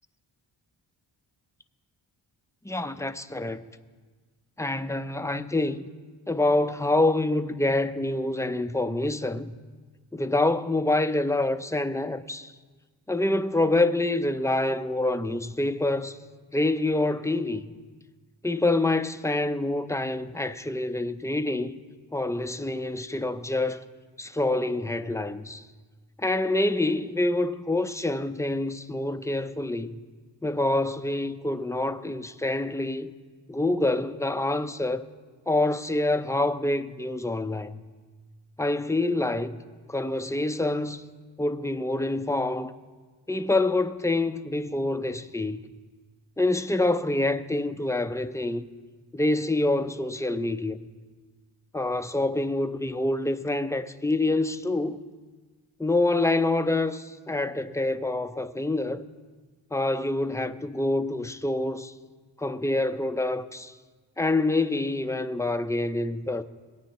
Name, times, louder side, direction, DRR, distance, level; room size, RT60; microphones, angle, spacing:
voice 1, 2.6-3.6 4.6-5.8 6.3-9.5 10.1-12.5 13.1-16.2 16.5-17.7 18.4-21.8 22.1-23.8 24.2-25.6 26.2-30.0 30.4-33.1 33.5-35.1 35.5-37.8 38.6-39.6 39.9-41.0 41.4-42.7 43.3-45.6 46.4-48.7 49.1-50.9 51.7-55.0 55.8-59.1 59.7-61.9 62.4-63.7 64.2-66.4, left 2 dB, 5° left, 0.5 m, -26 dB
21.0 x 9.0 x 3.0 m
cardioid pair, 50°, 46 cm